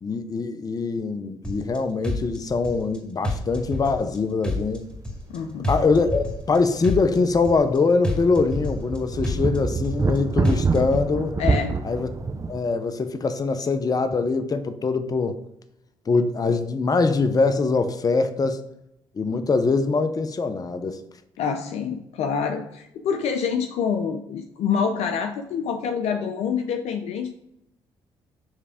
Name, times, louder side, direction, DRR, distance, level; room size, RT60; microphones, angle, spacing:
voice 1, 0.0-4.8 5.7-11.4 11.8-12.1 12.5-15.4 16.1-18.6 19.2-21.0, left 4 dB, 35° left, 10 dB, 0.7 m, -23 dB
sound 1, 1.4-1.8 2.0-3.0 3.2-4.2 4.4-5.4 5.6-6.6 6.8-7.8 8.0-9.0 9.2-10.2 10.4-11.0, left 1 dB, 10° left, 2.3 m, -29 dB
sound 2, 3.9-4.1 4.4-4.5 5.4-6.9 7.2-7.3 7.9-12.6, right 4 dB, 30° right, 0.6 m, -27 dB
voice 2, 5.3-5.7 11.4-11.7 21.4-27.3, left 6 dB, 70° left, 6 dB, 0.5 m, -26 dB
7.4 x 3.3 x 4.9 m, 0.82 s
supercardioid pair, 60°, 12 cm